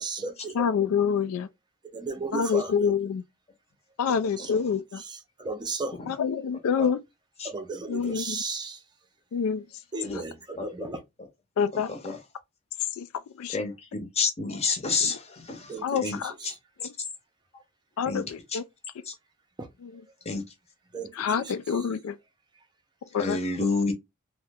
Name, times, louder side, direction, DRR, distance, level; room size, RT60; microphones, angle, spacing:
voice 1, 0.0-0.5 1.9-2.7 4.4-4.5 5.1-5.9 7.4-8.8 9.9-11.0 15.7-16.1 16.4-16.5 19.6-19.7 20.9-21.1 21.4-21.5, right 3 dB, 20° right, 0.5 m, -34 dB
voice 2, 0.5-1.5 2.3-3.2 4.0-5.0 6.1-7.0 7.9-8.4 9.3-9.6 10.1-10.2 11.6-11.9 13.0-13.1 13.4-13.6 15.0-15.2 15.8-16.3 18.0-18.6 19.8-20.0 21.1-22.1 23.1-23.4, left 6 dB, 85° left, 0.3 m, -27 dB
voice 3, 14.2-15.2 16.0-16.2 18.1-18.2 20.3-20.4 23.2-23.9, left 4 dB, 30° left, 0.7 m, -26 dB
2.8 x 2.1 x 3.3 m
head